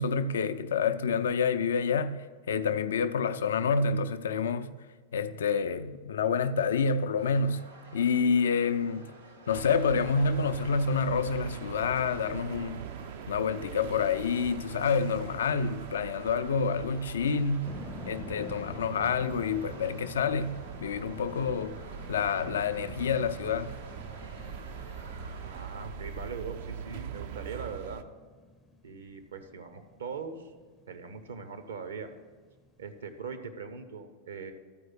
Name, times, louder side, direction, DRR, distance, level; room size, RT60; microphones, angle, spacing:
voice 1, 0.0-4.7 5.1-7.7 7.9-9.1 9.5-12.9 13.3-17.7 18.1-21.8 22.1-23.8, left 5 dB, 65° left, 0.4 m, -28 dB
sound 1, 7.2-25.6, right 2 dB, 85° right, 1.5 m, -51 dB
sound 2, 9.5-28.0, right 8 dB, 50° right, 0.4 m, -42 dB
sound 3, 17.6-33.2, left 2 dB, 10° left, 0.5 m, -49 dB
voice 2, 25.4-28.0 28.8-30.5 30.9-32.1 32.8-34.5, right 5 dB, 65° right, 0.8 m, -41 dB
12.5 x 4.8 x 6.0 m
figure-of-eight pair, 90°, 0 cm